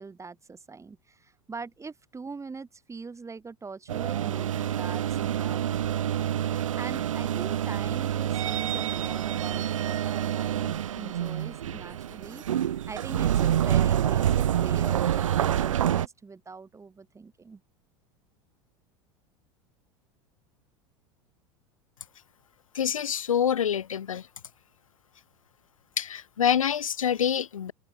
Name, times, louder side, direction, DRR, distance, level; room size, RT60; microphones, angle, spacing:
voice 1, 0.0-17.6, right 4 dB, 15° right, 5.2 m, -43 dB
sound 1, 3.9-16.1, right 10 dB, 80° right, 0.9 m, -27 dB
voice 2, 22.7-24.3 26.0-27.7, left 8 dB, 85° left, 1.0 m, -26 dB
hypercardioid pair, 85°, 17 cm